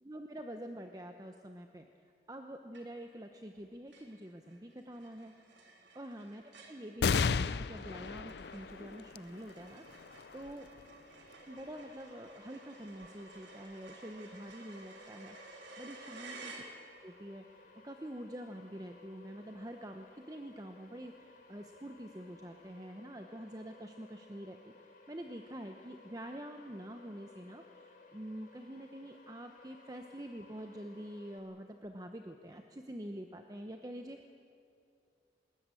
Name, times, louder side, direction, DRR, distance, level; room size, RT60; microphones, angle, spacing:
voice 1, 0.0-5.3 5.9-10.7 11.5-16.7 17.0-24.7 25.1-34.2, equal, 20° right, 5 dB, 0.9 m, -46 dB
sound 1, 2.7-3.2 3.5-3.6 3.9-17.2, right 3 dB, 90° right, 3.7 m, -54 dB
sound 2, 7.0-13.9 14.5-14.6 15.7-16.3, left 5 dB, 70° left, 0.5 m, -37 dB
sound 3, 11.4-31.4, left 3 dB, 45° left, 3.2 m, -59 dB
21.0 x 19.5 x 9.1 m, 2.4 s
head